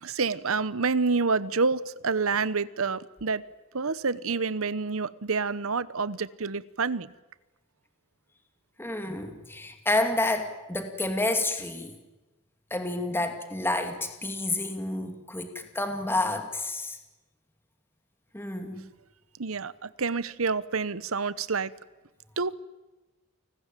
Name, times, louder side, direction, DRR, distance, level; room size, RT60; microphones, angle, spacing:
voice 1, 0.0-3.4 3.7-7.1 19.4-21.7 22.4-22.5, right 4 dB, 80° right, 1.0 m, -28 dB
voice 2, 8.8-11.9 12.7-17.0 18.3-18.9, left 2 dB, 10° left, 2.4 m, -29 dB
29.5 x 19.5 x 9.1 m
head